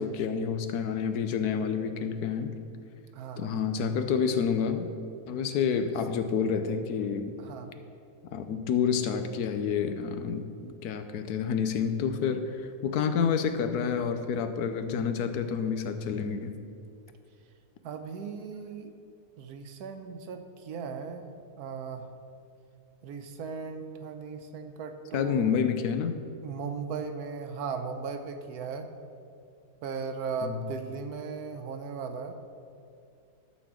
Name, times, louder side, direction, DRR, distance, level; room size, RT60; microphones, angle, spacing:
voice 1, 0.0-2.6 3.4-4.9 5.3-7.3 8.3-16.5 25.1-26.2 30.4-30.6, left 6 dB, 85° left, 8 dB, 1.2 m, -29 dB
voice 2, 3.1-3.6 7.4-7.7 17.8-18.9 19.4-21.3 21.6-22.1 23.0-25.6 26.4-28.9 29.8-32.3, right 5 dB, 80° right, 7 dB, 1.3 m, -37 dB
12.5 x 4.3 x 7.3 m, 2.4 s
omnidirectional pair, 1.6 m